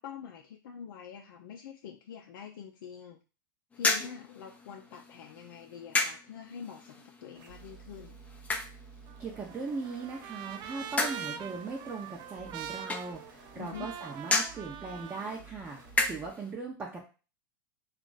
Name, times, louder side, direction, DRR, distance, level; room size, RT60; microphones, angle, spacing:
voice 1, 0.0-3.2 3.7-8.2 13.6-14.0, left 7 dB, 70° left, 1 dB, 0.6 m, -45 dB
sound 1, 3.7-16.5, left 3 dB, 10° left, 0.6 m, -36 dB
sound 2, 7.3-16.3, right 5 dB, 60° right, 1.1 m, -53 dB
Trumpet, 9.1-15.4, right 9 dB, 40° right, 0.3 m, -43 dB
voice 2, 9.2-15.8 16.1-17.1, right 4 dB, 20° right, -3 dB, 0.8 m, -39 dB
3.0 x 2.5 x 3.9 m, 0.33 s
hypercardioid pair, 110°, 12 cm